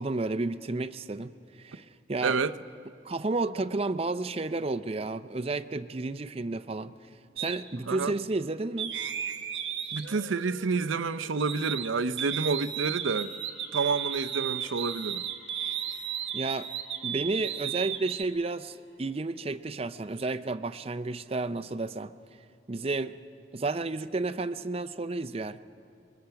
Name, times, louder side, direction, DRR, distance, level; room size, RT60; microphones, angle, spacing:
voice 1, 0.0-1.3 1.6-2.4 3.0-6.9 7.4-8.9 16.3-16.7 17.0-22.1 22.7-23.2 23.5-25.6, right 3 dB, 30° right, 0.5 m, -31 dB
voice 2, 2.2-2.6 7.9-8.1 9.9-13.3 13.7-15.2, right 4 dB, 90° right, 0.6 m, -29 dB
sound 1, 7.4-7.6 8.8-11.9 12.2-18.2, right 9 dB, 70° right, 1.1 m, -35 dB
sound 2, 12.9-19.6, left 2 dB, 65° left, 7.0 m, -57 dB
29.5 x 22.5 x 5.8 m
head